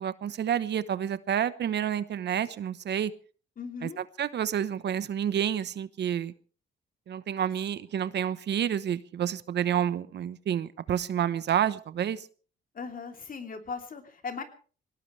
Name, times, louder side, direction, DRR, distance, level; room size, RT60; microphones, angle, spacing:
voice 1, 0.0-3.1 3.8-3.9 4.2-6.3 7.1-12.3, right 9 dB, 60° right, 15 dB, 1.0 m, -29 dB
voice 2, 3.6-4.0 12.7-14.4, left 5 dB, 45° left, 5 dB, 3.1 m, -38 dB
23.5 x 18.0 x 3.3 m, 0.40 s
cardioid pair, 90°, 20 cm